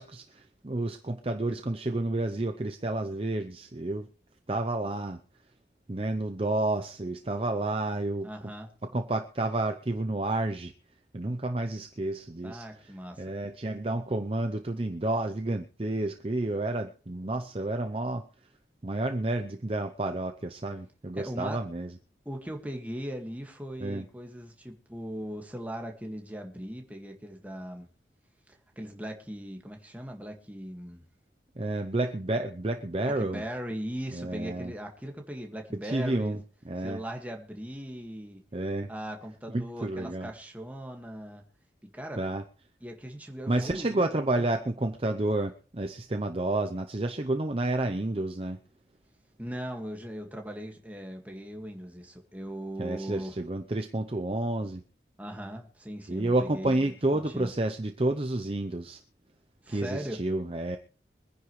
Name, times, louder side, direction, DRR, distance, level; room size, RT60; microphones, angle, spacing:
voice 1, 0.0-4.1 4.5-5.2 5.9-8.3 8.9-10.7 11.1-12.9 13.2-18.2 18.8-21.9 23.8-24.1 31.6-33.4 34.1-34.7 35.8-36.4 36.6-37.0 38.5-38.9 39.5-40.3 42.2-42.4 43.5-48.6 52.8-54.8 56.1-59.0 59.7-60.8, right 2 dB, 30° right, 6 dB, 0.6 m, -30 dB
voice 2, 8.2-8.7 12.4-13.3 21.2-21.6 22.2-27.9 28.5-31.1 33.0-36.3 36.8-38.4 38.9-41.4 41.8-42.2 42.8-44.4 49.4-53.3 55.2-57.5 59.6-60.2, equal, 10° right, 2 dB, 1.8 m, -39 dB
24.5 x 10.0 x 3.2 m, 0.39 s
head